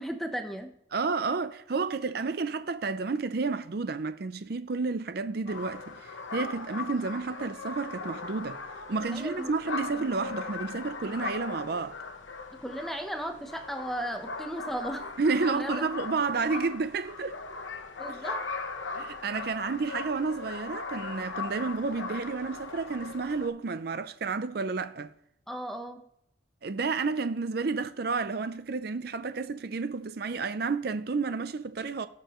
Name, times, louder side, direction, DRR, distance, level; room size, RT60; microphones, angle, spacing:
voice 1, 0.0-0.7 9.1-9.5 9.9-10.1 12.6-15.1 15.5-15.8 16.6-16.7 18.0-18.5 25.5-26.0, right 1 dB, ahead, 0.9 m, -36 dB
voice 2, 0.9-8.6 8.9-12.0 15.2-17.4 18.1-18.3 18.9-25.1 26.6-32.1, right 4 dB, 55° right, 0.5 m, -31 dB
sound 1, 5.5-23.5, left 4 dB, 80° left, 1.0 m, -39 dB
18.0 x 6.7 x 3.1 m
head